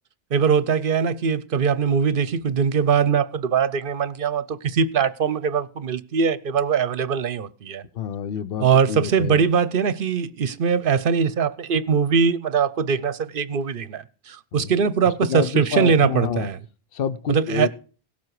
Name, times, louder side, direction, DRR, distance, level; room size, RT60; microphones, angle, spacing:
voice 1, 0.3-7.8 8.6-16.6 17.3-17.7, right 6 dB, 60° right, 0.9 m, -21 dB
voice 2, 7.9-9.4 14.5-14.7 15.3-16.5 16.9-17.7, left 7 dB, 65° left, 1.0 m, -27 dB
17.0 x 7.5 x 4.7 m
omnidirectional pair, 1.0 m